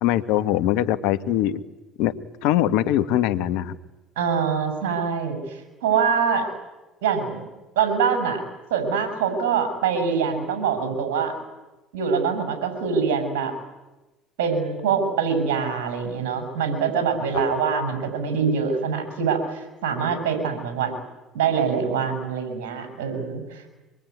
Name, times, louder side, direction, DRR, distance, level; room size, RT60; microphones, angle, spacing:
voice 1, 0.0-1.6 2.0-2.1 2.4-3.8, left 12 dB, 70° left, 13 dB, 1.4 m, -22 dB
voice 2, 4.2-6.5 7.0-7.4 7.8-8.4 8.7-11.3 11.9-13.5 14.4-20.9 21.3-23.7, right 6 dB, 80° right, 7 dB, 7.0 m, -24 dB
25.5 x 22.5 x 9.5 m, 1.1 s
hypercardioid pair, 70°, 0 cm